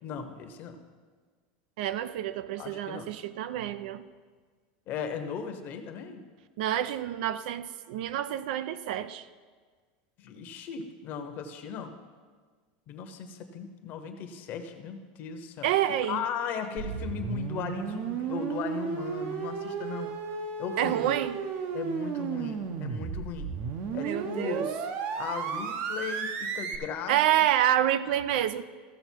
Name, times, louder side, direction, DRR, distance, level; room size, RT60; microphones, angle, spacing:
voice 1, 0.0-0.8 2.6-3.1 4.9-6.2 10.2-11.9 12.9-15.7 16.0-20.1 20.6-21.2 21.7-23.5 23.9-24.7 25.2-27.5, left 7 dB, 40° left, 1.0 m, -37 dB
voice 2, 1.8-4.0 6.6-9.3 15.6-16.2 20.8-21.4 24.0-24.6 27.1-28.6, right 11 dB, 70° right, 0.5 m, -28 dB
sound 1, 16.8-26.8, right 6 dB, 45° right, 0.8 m, -34 dB
15.0 x 6.4 x 4.6 m
supercardioid pair, 160°, 5 cm